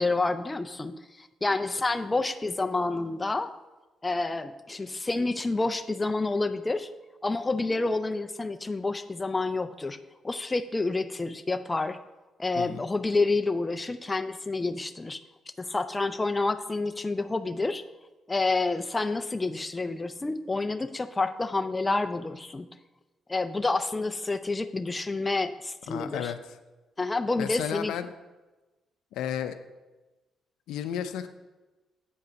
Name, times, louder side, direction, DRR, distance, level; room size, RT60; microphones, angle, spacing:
voice 1, 0.0-3.5 4.0-6.9 7.2-10.0 10.2-12.0 12.4-15.2 15.6-17.8 18.3-22.7 23.3-26.3 27.0-27.9, left 3 dB, 20° left, 10 dB, 0.5 m, -29 dB
voice 2, 12.5-12.9 25.9-26.6 27.4-28.1 29.1-29.6 30.7-31.3, left 9 dB, 85° left, 9 dB, 0.5 m, -33 dB
8.3 x 5.5 x 5.2 m, 1.1 s
cardioid pair, 90°, 0 cm